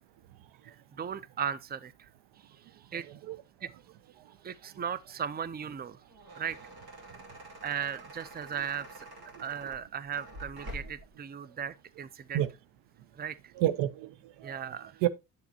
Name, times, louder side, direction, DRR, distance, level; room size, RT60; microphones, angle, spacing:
voice 1, 0.6-2.1 2.4-3.1 3.6-3.7 4.4-6.0 6.3-6.6 7.6-9.1 9.4-12.4 13.1-13.5 14.4-15.0, right 8 dB, 20° right, 0.6 m, -37 dB
voice 2, 2.9-3.4 4.2-4.3 9.3-9.7 12.3-12.5 13.6-14.6 15.0-15.1, right 13 dB, 75° right, 0.7 m, -31 dB
sound 1, 5.9-11.1, right 1 dB, 50° right, 2.7 m, -47 dB
7.9 x 7.1 x 2.8 m
hypercardioid pair, 55°, 45 cm